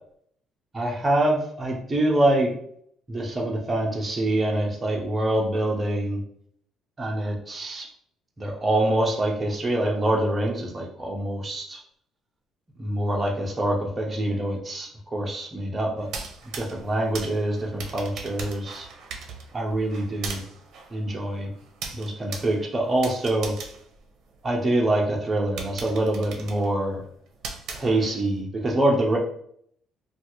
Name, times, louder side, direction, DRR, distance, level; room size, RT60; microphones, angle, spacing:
voice 1, 0.7-2.5 3.1-6.2 7.0-7.9 8.4-11.8 12.8-16.1 16.6-18.9 19.5-20.4 20.9-21.5 21.9-23.5 24.4-27.0 27.8-29.2, right 1 dB, 15° right, -2 dB, 0.6 m, -25 dB
sound 1, 16.0-24.8 25.2-25.3 25.6-28.4, right 5 dB, 60° right, 0.6 m, -39 dB
3.3 x 2.3 x 2.9 m, 0.66 s
cardioid pair, 170°, 0 cm